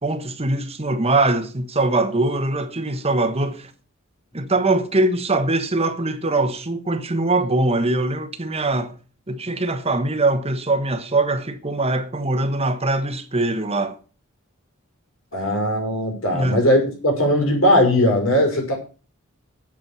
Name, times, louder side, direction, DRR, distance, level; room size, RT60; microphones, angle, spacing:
voice 1, 0.0-3.7 4.3-8.9 9.3-14.0 16.3-16.6, right 2 dB, 30° right, 1.2 m, -22 dB
voice 2, 15.3-18.7, equal, 75° left, 5.9 m, -19 dB
8.7 x 8.3 x 7.5 m
head